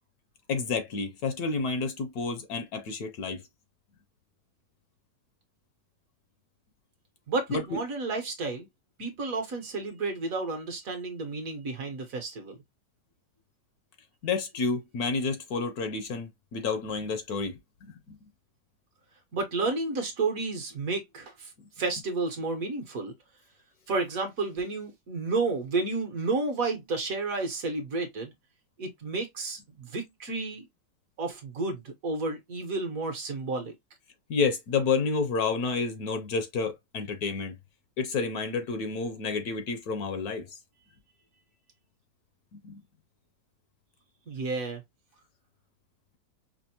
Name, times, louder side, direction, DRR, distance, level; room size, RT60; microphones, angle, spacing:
voice 1, 0.5-3.4 7.5-7.6 14.2-18.2 34.3-37.5 38.0-40.5 42.5-42.8, left 4 dB, 65° left, 1.1 m, -30 dB
voice 2, 7.3-8.7 9.0-12.6 19.3-21.5 21.8-23.1 23.9-28.3 28.8-30.7 31.2-33.7 44.3-44.8, right 3 dB, 60° right, 1.3 m, -31 dB
5.1 x 2.0 x 2.8 m
omnidirectional pair, 1.9 m